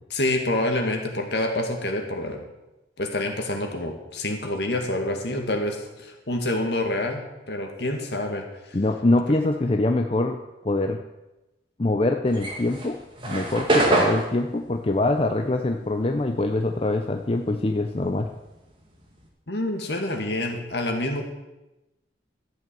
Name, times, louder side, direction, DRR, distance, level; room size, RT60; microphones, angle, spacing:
voice 1, 0.1-2.4 3.0-8.8 19.5-21.2, left 1 dB, 65° left, 3 dB, 2.1 m, -27 dB
voice 2, 8.7-10.4 10.6-11.0 11.8-13.0 13.2-18.3, left 2 dB, 30° left, 5 dB, 0.6 m, -24 dB
sound 1, 12.3-17.0 17.3-19.3, right 2 dB, 30° right, 2.4 m, -26 dB
12.5 x 7.9 x 7.7 m, 1.0 s
head